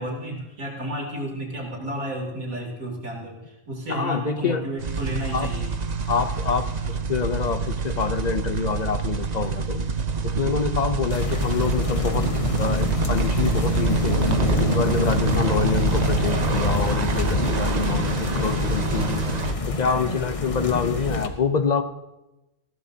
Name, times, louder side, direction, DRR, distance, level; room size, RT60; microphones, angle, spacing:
voice 1, 0.0-5.7 19.8-20.1, right 1 dB, 90° right, -2 dB, 3.5 m, -32 dB
voice 2, 3.9-4.6 5.3-5.5 6.1-9.8 10.2-12.3 12.6-14.2 14.6-19.2 19.8-21.8, left 5 dB, 50° left, 10 dB, 0.5 m, -26 dB
sound 1, 4.8-19.5, right 4 dB, 40° right, 0.7 m, -26 dB
sound 2, 11.1-21.3, left 3 dB, 30° left, 0.9 m, -27 dB
20.0 x 16.0 x 2.8 m, 0.99 s
omnidirectional pair, 1.4 m